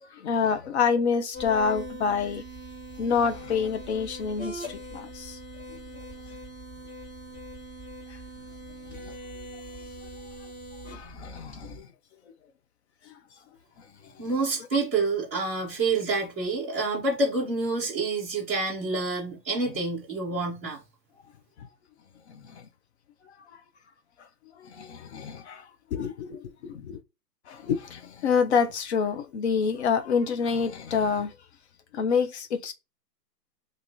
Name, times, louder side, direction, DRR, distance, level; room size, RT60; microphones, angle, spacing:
voice 1, 0.0-2.4 3.0-5.4 5.7-6.0 8.1-8.2 8.9-9.2 9.8-9.9 10.8-11.9 13.0-13.1 13.8-14.3 21.6-21.7 22.3-22.7 23.5-23.6 24.2-24.3 24.5-27.0 27.5-31.3 31.9-32.7, left 6 dB, 45° left, 0.5 m, -28 dB
sound 1, 1.3-11.8, equal, 25° left, 1.8 m, -41 dB
voice 2, 14.2-20.8, right 3 dB, 10° right, 0.4 m, -28 dB
2.9 x 2.6 x 2.6 m
hypercardioid pair, 130°, 50 cm